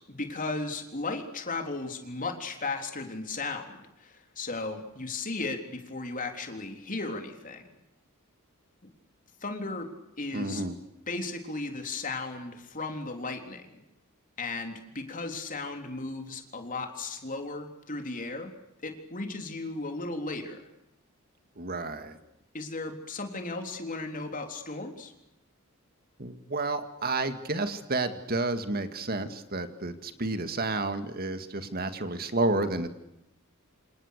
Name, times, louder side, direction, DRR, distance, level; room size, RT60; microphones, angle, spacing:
voice 1, 0.1-7.6 8.8-8.9 9.4-9.9 10.2-10.6 11.1-13.8 14.4-18.5 18.8-20.7 22.5-25.1, left 3 dB, 40° left, 5 dB, 3.7 m, -35 dB
voice 2, 10.3-10.8 21.6-22.2 26.2-32.9, right 2 dB, 45° right, 9 dB, 2.0 m, -30 dB
28.0 x 27.0 x 6.7 m, 0.88 s
head